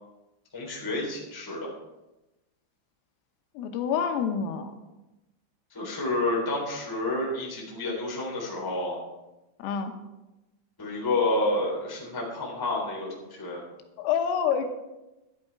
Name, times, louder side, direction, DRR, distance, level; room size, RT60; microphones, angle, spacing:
voice 1, 0.5-1.7 5.7-9.0 10.8-13.6, left 2 dB, 5° left, -3 dB, 2.4 m, -29 dB
voice 2, 3.6-4.8 9.6-9.9 14.0-14.7, left 7 dB, 80° left, 6 dB, 3.6 m, -27 dB
12.0 x 11.5 x 4.6 m, 1.0 s
omnidirectional pair, 5.8 m